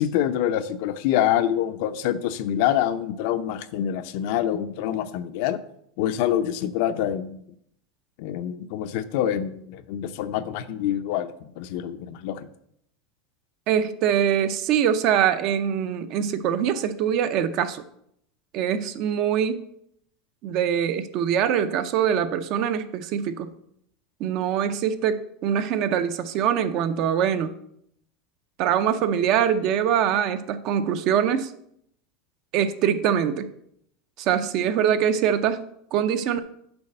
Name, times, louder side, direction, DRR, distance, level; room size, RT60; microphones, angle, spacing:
voice 1, 0.0-5.6 6.0-7.4 8.2-12.5, left 11 dB, 60° left, 10 dB, 0.6 m, -26 dB
voice 2, 13.7-17.8 18.5-19.7 20.4-23.5 24.2-27.5 28.6-31.5 32.5-33.5 34.2-36.4, right 9 dB, 45° right, 11 dB, 0.6 m, -23 dB
7.0 x 5.0 x 6.6 m, 0.72 s
supercardioid pair, 160°, 0 cm